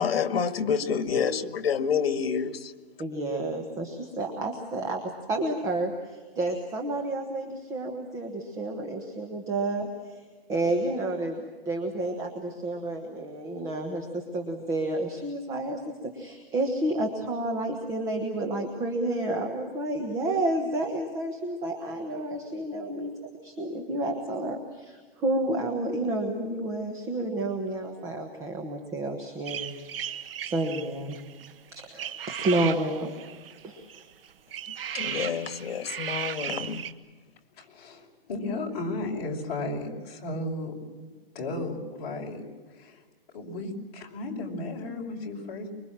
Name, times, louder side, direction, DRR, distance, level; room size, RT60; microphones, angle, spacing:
voice 1, 0.0-2.5 34.9-36.8, left 7 dB, 75° left, 10 dB, 1.9 m, -28 dB
voice 2, 3.0-5.0 5.3-10.2 10.5-23.1 23.4-29.7 30.0-30.2 30.5-31.2 31.7-33.1 33.6-33.8, right 2 dB, 10° right, 3 dB, 1.2 m, -30 dB
sound 1, 29.5-36.9, right 9 dB, 65° right, 1.4 m, -36 dB
voice 3, 37.5-40.7 41.3-42.4 42.7-43.0 43.3-45.7, left 2 dB, 40° left, -1 dB, 5.5 m, -34 dB
25.0 x 23.0 x 7.4 m, 1.4 s
hypercardioid pair, 175°, 30 cm